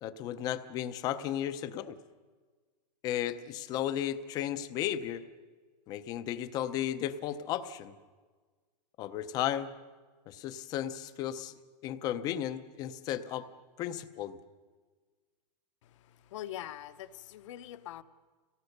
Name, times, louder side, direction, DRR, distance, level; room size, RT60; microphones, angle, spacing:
voice 1, 0.0-1.9 3.0-5.2 5.9-7.9 9.0-9.7 10.3-11.5 11.8-13.5 13.8-14.4, left 11 dB, 20° left, 0.5 m, -34 dB
voice 2, 15.8-18.0, left 12 dB, 45° left, 0.9 m, -43 dB
24.5 x 18.0 x 6.6 m
supercardioid pair, 175°, 21 cm